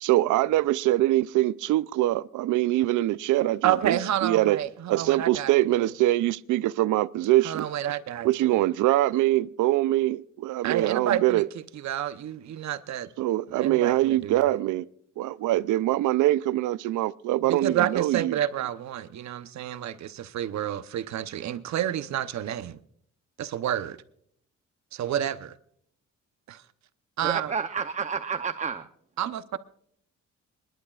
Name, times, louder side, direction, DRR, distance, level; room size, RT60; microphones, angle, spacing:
voice 1, 0.0-4.6 4.9-7.6 8.2-11.5 13.2-14.8 15.2-18.4, right 15 dB, 85° right, 0.5 m, -23 dB
voice 2, 3.6-5.9 7.4-8.5 10.6-13.1 13.5-14.6 17.4-22.8 23.4-24.0 24.9-25.5 26.5-26.6 27.2-27.5 29.2-29.6, right 11 dB, 65° right, 0.9 m, -29 dB
voice 3, 27.2-28.8, right 6 dB, 25° right, 0.7 m, -30 dB
26.0 x 11.0 x 2.4 m
cardioid pair, 90°, 30 cm